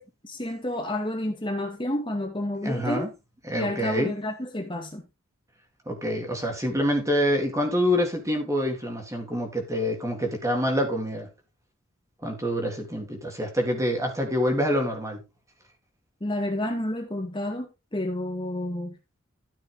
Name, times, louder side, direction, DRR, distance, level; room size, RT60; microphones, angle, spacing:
voice 1, 0.2-3.1 3.6-5.0 16.2-19.0, left 1 dB, 25° left, 2.2 m, -30 dB
voice 2, 2.6-3.1 3.5-4.1 5.8-11.3 12.2-15.2, equal, 15° right, 3.5 m, -26 dB
13.5 x 7.3 x 3.8 m
head